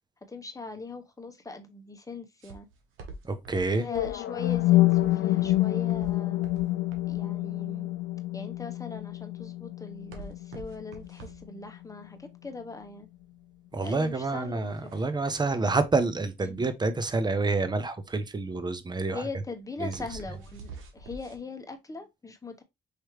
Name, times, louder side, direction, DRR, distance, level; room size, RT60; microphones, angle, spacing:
voice 1, 0.3-2.7 3.8-6.4 7.1-7.9 8.3-13.1 13.8-14.9 16.4-16.7 19.1-22.6, left 3 dB, 15° left, 1.1 m, -41 dB
sound 1, 2.4-21.4, right 3 dB, 85° right, 1.2 m, -47 dB
voice 2, 3.2-3.8 13.7-19.2 19.8-19.9, right 3 dB, 20° right, 0.7 m, -28 dB
sound 2, 3.8-11.8, left 16 dB, 75° left, 0.5 m, -27 dB
4.9 x 3.1 x 3.1 m
cardioid pair, 90°, 20 cm